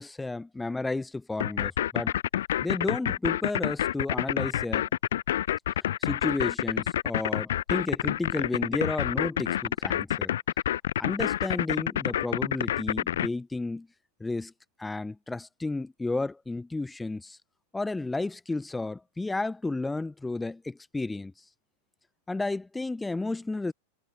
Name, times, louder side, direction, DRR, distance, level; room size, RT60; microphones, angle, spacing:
voice 1, 0.0-2.1 2.6-4.9 6.0-10.3 11.0-13.9 14.2-14.5 14.8-17.4 17.7-21.3 22.3-23.7, left 2 dB, 10° left, 0.7 m, -32 dB
sound 1, 1.4-13.3, left 12 dB, 60° left, 0.7 m, -28 dB
figure-of-eight pair, 90°, 0 cm